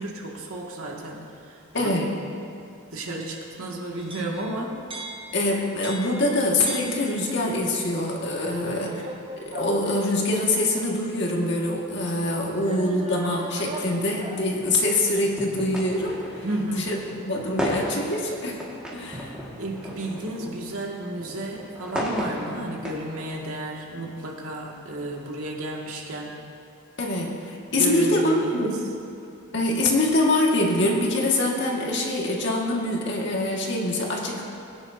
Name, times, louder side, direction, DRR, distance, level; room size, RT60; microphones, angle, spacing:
voice 1, 0.0-1.9 2.9-4.8 8.5-9.0 12.6-12.9 16.4-16.9 19.6-26.4 27.8-28.8, right 1 dB, 80° right, -2 dB, 1.9 m, -32 dB
voice 2, 1.7-2.1 5.3-8.9 9.4-16.2 16.7-17.0 17.3-18.6 18.9-19.3 27.0-28.8 29.5-34.4, left 1 dB, 50° left, -1 dB, 1.7 m, -24 dB
sound 1, 4.0-7.6 8.4-10.7 11.5-11.6 12.6-14.6, right 1 dB, 25° right, 0.7 m, -40 dB
sound 2, 14.5-23.5, equal, 5° right, 1.6 m, -35 dB
21.0 x 10.0 x 2.7 m, 2.6 s
head